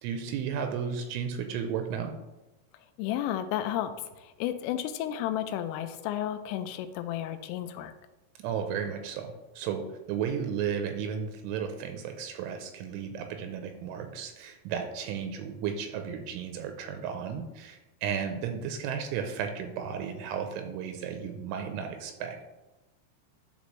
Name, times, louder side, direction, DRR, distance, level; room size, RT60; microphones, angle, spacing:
voice 1, 0.0-2.1 8.4-22.5, right 7 dB, 85° right, 5 dB, 3.0 m, -34 dB
voice 2, 3.0-7.9, left 11 dB, 85° left, 9 dB, 3.1 m, -32 dB
12.0 x 4.1 x 3.1 m, 1.0 s
omnidirectional pair, 5.7 m